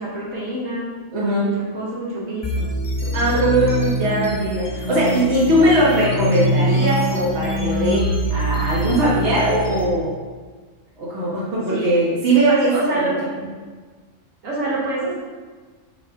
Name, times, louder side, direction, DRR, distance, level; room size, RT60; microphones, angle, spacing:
voice 1, 0.0-0.9 1.4-2.7 3.0-3.5 11.7-11.9 12.5-13.1 14.4-15.1, right 2 dB, 80° right, -6 dB, 1.9 m, -27 dB
voice 2, 1.1-1.5 3.1-10.1 11.0-13.1 13.4-13.5, right 1 dB, 60° right, -6 dB, 1.5 m, -20 dB
sound 1, 2.4-9.8, equal, 45° left, 0.3 m, -24 dB
6.3 x 4.2 x 3.6 m, 1.4 s
omnidirectional pair, 1.4 m